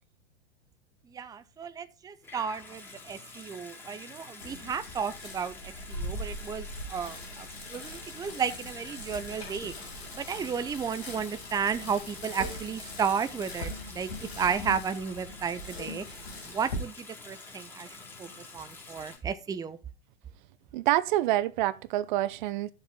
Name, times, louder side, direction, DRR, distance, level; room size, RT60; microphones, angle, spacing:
voice 1, 1.1-9.7 10.1-16.1 16.5-17.9 18.2-19.8, right 6 dB, 10° right, 0.7 m, -33 dB
Water tap faucet / Sink (filling or washing) / Bathtub (filling or washing), 2.2-19.2, left 3 dB, 5° left, 3.8 m, -48 dB
Bicycle, 4.4-16.7, left 1 dB, 85° left, 5.6 m, -41 dB
voice 2, 20.7-22.7, right 15 dB, 50° right, 0.7 m, -27 dB
12.0 x 7.2 x 3.7 m
hypercardioid pair, 100°, 31 cm